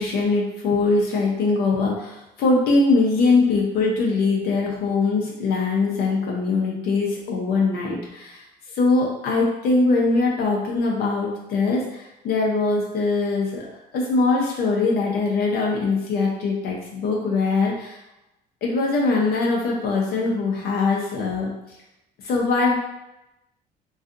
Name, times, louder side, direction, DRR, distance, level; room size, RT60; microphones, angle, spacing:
voice 1, 0.0-8.4 8.7-13.7 13.9-18.0 18.6-21.5 22.2-22.7, left 3 dB, 70° left, -2 dB, 0.6 m, -22 dB
2.6 x 2.3 x 2.4 m, 0.91 s
cardioid pair, 110°, 17 cm